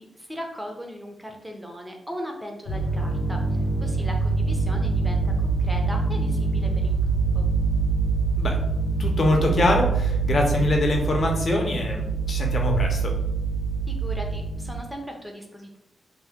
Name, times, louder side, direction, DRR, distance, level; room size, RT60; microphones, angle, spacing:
voice 1, 0.0-3.4 3.8-7.5 13.9-15.8, equal, 5° right, 2 dB, 0.5 m, -38 dB
sound 1, 2.7-14.8, right 4 dB, 90° left, 0.6 m, -25 dB
voice 2, 9.0-13.1, left 2 dB, 45° left, 1 dB, 0.6 m, -24 dB
2.8 x 2.1 x 3.4 m, 0.82 s
wide cardioid pair, 135°, 0 cm